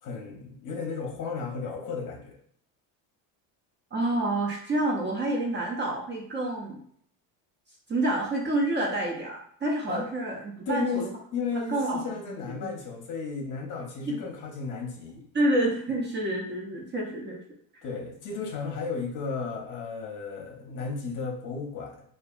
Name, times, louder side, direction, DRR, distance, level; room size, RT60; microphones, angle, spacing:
voice 1, 0.0-2.4 9.9-10.0 10.7-11.0 11.3-15.2 17.8-22.0, left 5 dB, 45° left, 2 dB, 0.7 m, -34 dB
voice 2, 3.9-6.8 7.9-11.1 11.7-12.0 12.6-12.7 14.1-14.2 15.3-17.4, right 1 dB, 25° right, -2 dB, 0.4 m, -28 dB
2.6 x 2.4 x 2.4 m, 0.64 s
cardioid pair, 115°, 43 cm